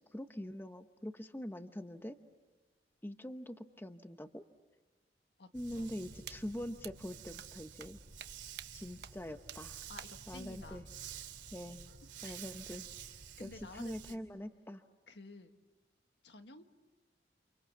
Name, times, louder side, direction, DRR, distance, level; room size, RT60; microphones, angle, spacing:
voice 1, 0.0-2.2 3.0-4.4 5.5-8.0 8.7-9.8 10.3-10.9 11.5-11.9 12.2-12.9 13.4-14.8, equal, 10° left, 8 dB, 0.8 m, -44 dB
Dog, 5.5-14.1, right 7 dB, 90° right, 2.7 m, -50 dB
sound 1, 6.3-6.4 6.8-6.9 7.4-7.5 7.8-7.9 8.2-8.3 8.6-8.7 9.0-9.1 9.5-9.6 10.0-10.1, right 10 dB, 65° right, 0.9 m, -46 dB
voice 2, 9.9-10.9 12.2-12.4 13.4-14.2 15.1-15.5 16.2-16.7, left 3 dB, 75° left, 7 dB, 1.6 m, -52 dB
29.5 x 28.0 x 7.1 m, 1.2 s
head